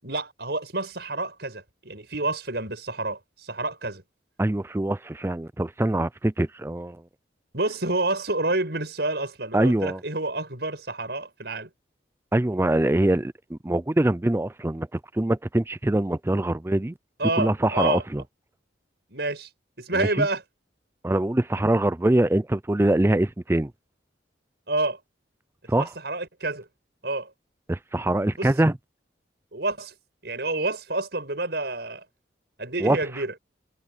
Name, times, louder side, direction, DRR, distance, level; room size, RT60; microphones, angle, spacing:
voice 1, 0.0-4.0 7.5-11.7 17.2-18.0 19.1-19.5 19.8-20.4 24.7-25.0 25.8-26.7 27.0-27.3 28.4-28.5 29.5-29.9 30.2-32.0 32.6-33.3, right 2 dB, 60° right, 7.4 m, -28 dB
voice 2, 4.4-7.0 9.5-10.0 12.3-14.9 15.1-16.9 17.4-18.2 20.0-20.3 21.0-23.7 25.7-25.9 27.7-28.7 32.8-33.0, right 1 dB, 15° right, 0.4 m, -23 dB
head